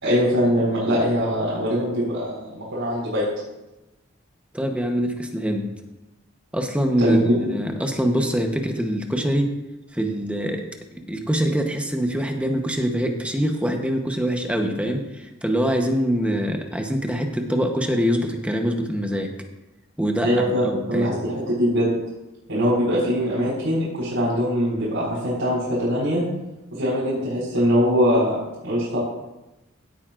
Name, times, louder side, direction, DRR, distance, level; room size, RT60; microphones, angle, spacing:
voice 1, 0.0-3.3 7.0-7.3 20.2-20.6 20.9-21.9 22.5-26.2 26.7-28.4 28.6-29.0, equal, 85° right, -9 dB, 4.2 m, -22 dB
voice 2, 4.5-5.7 6.5-7.2 7.5-9.5 9.9-10.7 10.9-19.3 20.0-20.3 20.6-21.1, equal, 5° right, 4 dB, 0.9 m, -24 dB
16.5 x 9.1 x 2.5 m, 0.98 s
head